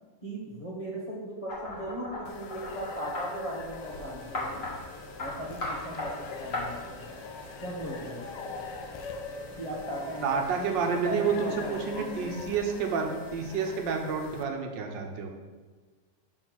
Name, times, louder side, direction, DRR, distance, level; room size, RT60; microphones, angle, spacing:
voice 1, 0.2-4.7 5.2-7.1 7.6-8.2 9.6-12.4, right 1 dB, 25° left, -5 dB, 1.0 m, -38 dB
sound 1, 1.5-3.3 4.3-4.8 5.2-5.3 5.6-6.1 6.5-6.6, left 2 dB, 45° left, 2.0 m, -35 dB
sound 2, 2.3-14.4, left 4 dB, 75° left, 1.3 m, -43 dB
sound 3, 3.8-12.3, equal, 30° right, 1.6 m, -50 dB
voice 2, 10.2-15.3, right 5 dB, 85° right, 3 dB, 1.5 m, -29 dB
6.2 x 4.3 x 6.0 m, 1.4 s
omnidirectional pair, 2.0 m